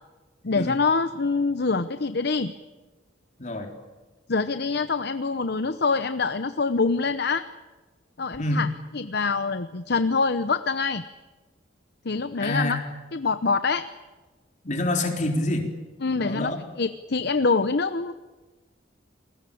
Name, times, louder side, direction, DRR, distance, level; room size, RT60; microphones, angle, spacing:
voice 1, 0.4-2.5 4.3-7.4 8.2-8.7 8.9-11.0 12.0-12.8 13.1-13.8 16.0-18.1, left 4 dB, 60° left, 11 dB, 0.9 m, -25 dB
voice 2, 3.4-3.7 8.4-8.6 12.4-12.8 14.6-15.7 16.1-16.7, left 1 dB, 40° left, 3 dB, 4.0 m, -27 dB
28.5 x 21.0 x 8.6 m, 1.2 s
head